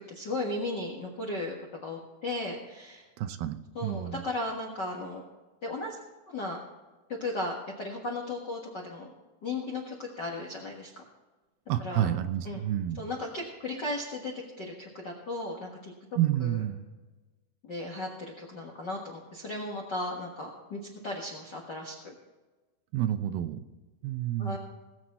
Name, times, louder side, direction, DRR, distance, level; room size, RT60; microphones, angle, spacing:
voice 1, 0.0-1.5 1.8-3.1 3.7-5.2 5.6-6.0 6.3-6.6 7.2-9.1 9.4-11.0 11.8-12.1 12.4-12.6 12.9-15.9 16.4-16.6 17.6-22.1 24.4-24.6, left 2 dB, 55° left, 0 dB, 1.1 m, -36 dB
voice 2, 3.2-4.2 11.7-13.0 16.2-16.8 22.9-23.6 24.0-24.6, right 12 dB, 80° right, 10 dB, 2.5 m, -29 dB
19.0 x 7.8 x 4.2 m, 1.2 s
omnidirectional pair, 4.4 m